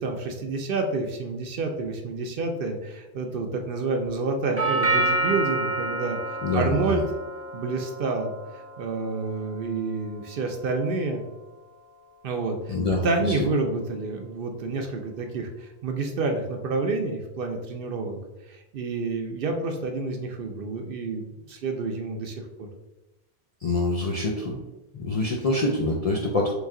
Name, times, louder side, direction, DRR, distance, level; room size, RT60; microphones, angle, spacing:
voice 1, 0.0-7.0 7.5-8.3 8.8-11.2 12.2-12.7 13.0-18.2 18.5-22.7, right 3 dB, 60° right, 4 dB, 0.6 m, -29 dB
Doorbell, 4.6-12.6, right 2 dB, 20° right, 0.4 m, -31 dB
voice 2, 6.4-7.0 12.7-13.4 23.6-24.6 24.9-26.5, left 2 dB, 55° left, -1 dB, 0.4 m, -25 dB
3.2 x 3.1 x 3.6 m, 1.0 s
omnidirectional pair, 1.2 m